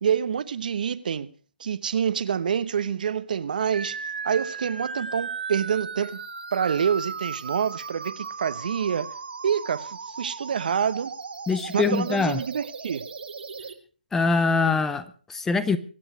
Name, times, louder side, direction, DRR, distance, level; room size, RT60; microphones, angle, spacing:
voice 1, 0.0-1.3 1.6-4.0 4.2-6.2 6.5-9.1 9.4-11.1 11.7-13.1, right 7 dB, 55° right, 1.0 m, -27 dB
sound 1, 3.7-13.7, right 5 dB, 70° right, 2.1 m, -36 dB
voice 2, 11.5-12.4 14.1-15.8, left 4 dB, 5° left, 0.6 m, -23 dB
24.5 x 9.0 x 4.8 m
hypercardioid pair, 150°, 6 cm